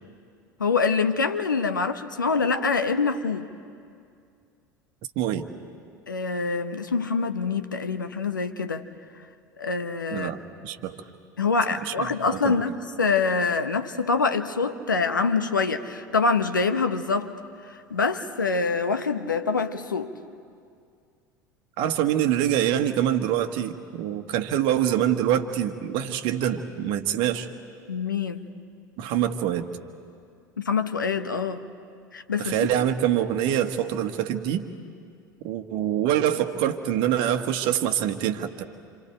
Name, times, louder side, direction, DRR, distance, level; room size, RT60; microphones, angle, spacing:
voice 1, 0.6-3.5 6.1-8.8 9.6-10.3 11.4-12.7 13.0-17.3 17.9-20.1 27.9-28.4 30.6-31.6 32.1-32.5, left 4 dB, 85° left, 10 dB, 1.0 m, -25 dB
voice 2, 5.1-5.5 10.1-11.0 11.8-12.6 21.8-27.5 29.0-29.7 32.4-34.7 35.4-38.6, right 10 dB, 55° right, 8 dB, 1.4 m, -25 dB
27.0 x 27.0 x 4.5 m, 2.3 s
figure-of-eight pair, 75°, 10 cm